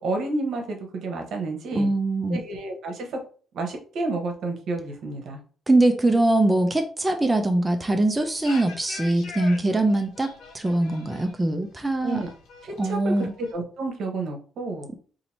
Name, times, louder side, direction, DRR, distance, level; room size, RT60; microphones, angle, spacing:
voice 1, 0.0-1.9 2.3-3.2 3.5-5.4 12.0-12.3 12.6-13.1 13.4-14.9, right 2 dB, 70° right, 3 dB, 1.0 m, -30 dB
voice 2, 1.7-2.4 5.7-12.2 12.8-13.3, right 2 dB, 15° right, 4 dB, 0.5 m, -22 dB
sound 1, 8.1-13.5, left 4 dB, 80° left, 0.9 m, -43 dB
2.8 x 2.7 x 4.2 m, 0.42 s
cardioid pair, 90°, 0 cm